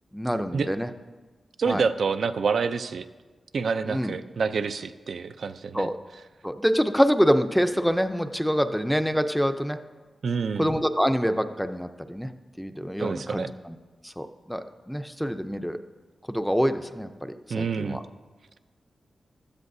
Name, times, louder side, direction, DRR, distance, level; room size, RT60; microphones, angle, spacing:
voice 1, 0.1-0.9 1.7-1.8 3.8-4.2 5.7-6.0 6.4-9.8 10.6-12.3 12.6-13.8 14.0-15.8 16.3-18.0, equal, ahead, 8 dB, 0.5 m, -26 dB
voice 2, 1.6-3.0 3.5-5.9 10.2-10.7 13.0-13.5 17.5-18.0, right 5 dB, 70° right, 9 dB, 0.5 m, -27 dB
16.0 x 13.5 x 2.7 m, 1.3 s
wide cardioid pair, 120°, 0 cm